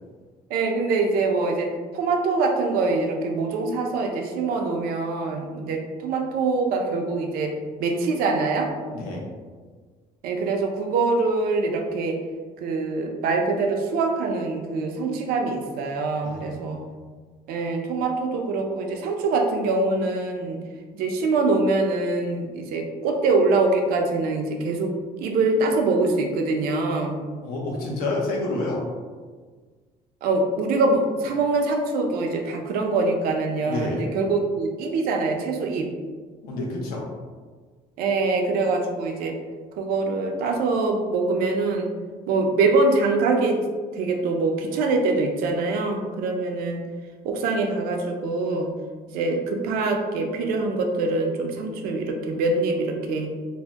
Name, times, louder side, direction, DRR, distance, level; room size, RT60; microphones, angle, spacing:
voice 1, 0.5-8.7 10.2-12.2 12.6-16.8 17.5-20.6 20.9-24.9 25.2-27.2 30.2-35.9 38.0-39.4 39.8-41.9 42.3-43.6 43.9-46.8 47.2-48.7 49.1-53.3, right 3 dB, 75° right, 3 dB, 0.5 m, -24 dB
voice 2, 8.9-9.2 16.2-16.9 27.4-28.8 33.6-34.0 36.4-37.1, left 2 dB, 75° left, -1 dB, 0.7 m, -29 dB
2.7 x 2.1 x 3.3 m, 1.5 s
cardioid pair, 150°, 15 cm